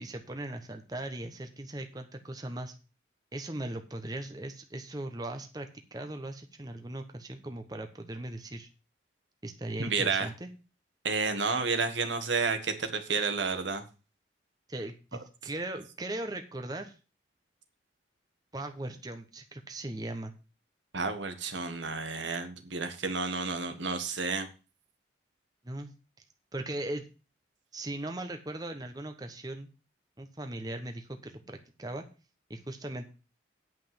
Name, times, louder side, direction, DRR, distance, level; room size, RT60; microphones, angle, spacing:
voice 1, 0.0-2.7 3.3-8.7 9.4-10.5 14.7-17.0 18.5-20.3 25.6-25.9 26.5-27.1 27.7-29.7 30.2-32.0 32.5-33.1, right 1 dB, 20° right, 5 dB, 1.0 m, -38 dB
voice 2, 9.8-10.3 11.0-13.8 20.9-24.5, right 4 dB, 80° right, 7 dB, 1.7 m, -31 dB
9.3 x 5.5 x 7.7 m, 0.33 s
head